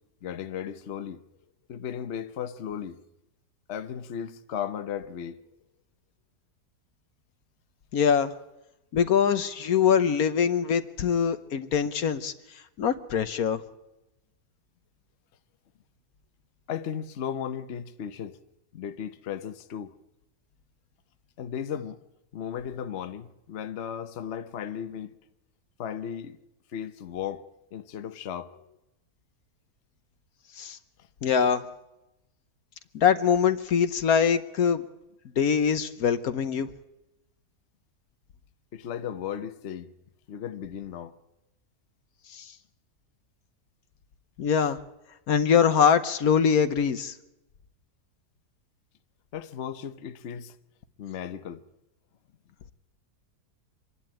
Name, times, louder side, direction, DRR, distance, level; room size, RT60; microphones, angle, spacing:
voice 1, 0.2-1.2 1.7-3.0 3.7-5.4 16.7-18.4 18.7-19.9 21.4-22.0 22.3-25.1 25.8-26.4 26.7-28.8 38.7-39.9 40.3-41.2 44.6-44.7 49.3-50.5 51.0-51.6, left 8 dB, 50° left, 1.0 m, -35 dB
voice 2, 7.9-8.3 8.9-12.3 12.8-13.6 30.6-30.8 31.2-31.6 32.9-34.8 35.4-36.7 42.3-42.5 44.4-44.8 45.3-47.1, left 7 dB, 65° left, 1.3 m, -23 dB
25.0 x 11.5 x 9.1 m
omnidirectional pair, 1.7 m